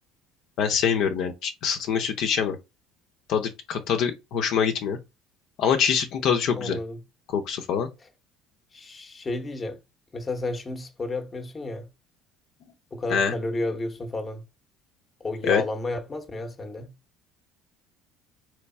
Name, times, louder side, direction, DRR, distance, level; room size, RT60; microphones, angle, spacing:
voice 1, 0.6-2.6 3.3-5.0 5.6-6.8 7.3-7.9 13.1-13.3 15.4-15.6, left 7 dB, 60° left, 0.8 m, -24 dB
voice 2, 6.5-7.0 8.0-8.1 8.7-9.8 10.1-11.9 12.9-14.4 15.2-16.9, left 2 dB, 25° left, 1.0 m, -32 dB
3.5 x 3.2 x 4.3 m
supercardioid pair, 110°, 0 cm